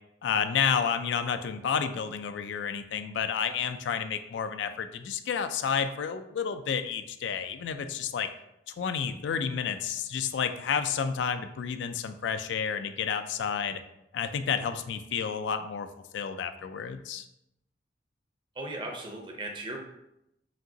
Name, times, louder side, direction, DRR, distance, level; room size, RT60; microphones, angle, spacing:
voice 1, 0.2-8.3 8.7-13.8 14.1-15.9 16.1-17.2, left 7 dB, 75° left, 9 dB, 0.3 m, -30 dB
voice 2, 18.6-19.8, right 2 dB, 25° right, 2 dB, 0.6 m, -37 dB
5.0 x 2.9 x 2.7 m, 0.83 s
head